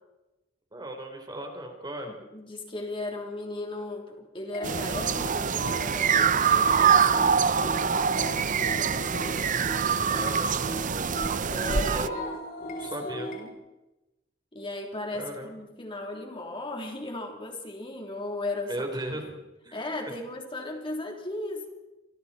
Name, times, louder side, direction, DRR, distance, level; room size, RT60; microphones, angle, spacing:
voice 1, 0.7-2.2 10.1-11.1 11.9-12.2 12.8-13.3 15.2-15.5 18.7-19.3 19.6-19.8, right 1 dB, 25° right, 3 dB, 4.4 m, -37 dB
voice 2, 2.1-9.3 11.5-12.1 13.0-13.6 14.5-18.9 19.7-21.7, left 2 dB, 25° left, 2 dB, 3.7 m, -37 dB
sound 1, 4.5-13.5, right 1 dB, 50° left, 5.8 m, -38 dB
sound 2, 4.6-12.1, right 6 dB, 45° right, 0.7 m, -24 dB
29.5 x 26.5 x 4.5 m, 1.0 s
head